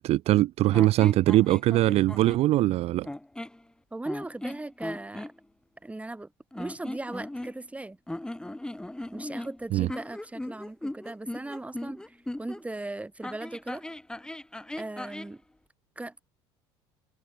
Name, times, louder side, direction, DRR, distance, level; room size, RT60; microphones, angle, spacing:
voice 1, 0.0-3.1 9.7-9.9, right 16 dB, 55° right, 0.6 m, -22 dB
sound 1, 0.7-2.5 3.0-3.6 4.1-5.3 6.5-7.8 8.1-12.6 13.2-15.4, left 1 dB, 5° left, 1.2 m, -38 dB
voice 2, 3.9-5.3 5.8-8.0 9.1-13.8 14.8-15.4 16.0-16.2, right 2 dB, 10° right, 2.4 m, -38 dB
hypercardioid pair, 75°, 13 cm